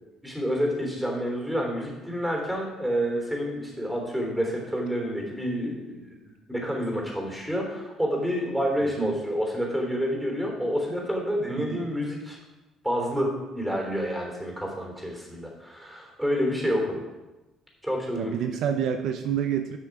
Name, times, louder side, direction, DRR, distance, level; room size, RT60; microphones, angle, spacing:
voice 1, 0.2-6.2 6.5-12.4 12.8-17.0 17.8-18.3, equal, 5° right, 0 dB, 3.5 m, -28 dB
voice 2, 18.1-19.8, right 9 dB, 70° right, 6 dB, 0.6 m, -28 dB
10.5 x 6.2 x 4.8 m, 1.1 s
supercardioid pair, 80°, 0 cm